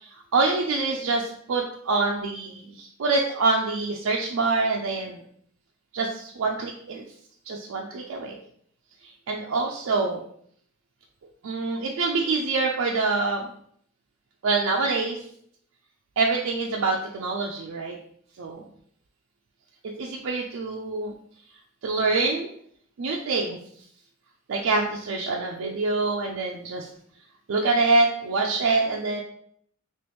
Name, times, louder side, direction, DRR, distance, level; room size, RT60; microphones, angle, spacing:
voice 1, 0.0-5.2 5.9-7.0 7.5-8.4 9.3-10.2 11.4-13.5 14.4-15.2 16.2-18.0 18.4-18.6 20.0-21.1 21.8-22.5 23.0-23.6 24.5-26.9 27.5-29.2, right 3 dB, 70° right, 0 dB, 0.4 m, -25 dB
3.0 x 3.0 x 3.4 m, 0.64 s
head